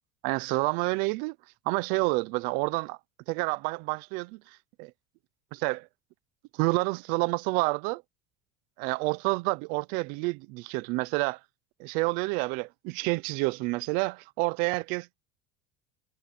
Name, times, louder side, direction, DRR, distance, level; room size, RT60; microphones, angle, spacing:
voice 1, 0.2-1.4 1.7-3.0 3.3-4.4 4.8-4.9 5.5-5.9 6.5-8.0 8.8-11.4 11.8-15.2, right 24 dB, 50° right, 0.6 m, -29 dB
cardioid pair, 170°, 19 cm